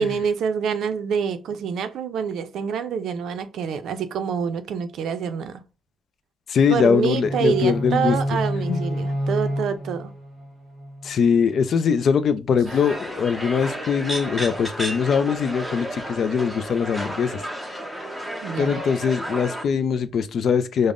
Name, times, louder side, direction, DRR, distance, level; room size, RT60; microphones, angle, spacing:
voice 1, 0.0-5.6 6.7-10.1 18.4-18.8, right 6 dB, 85° right, 0.4 m, -26 dB
voice 2, 6.5-8.2 8.7-8.8 11.0-17.4 18.6-20.9, left 6 dB, 55° left, 0.3 m, -22 dB
sound 1, 7.2-11.2, equal, 25° right, 0.9 m, -28 dB
sound 2, 12.6-19.6, equal, ahead, 0.6 m, -32 dB
5.1 x 2.0 x 2.4 m
wide cardioid pair, 155°, 0 cm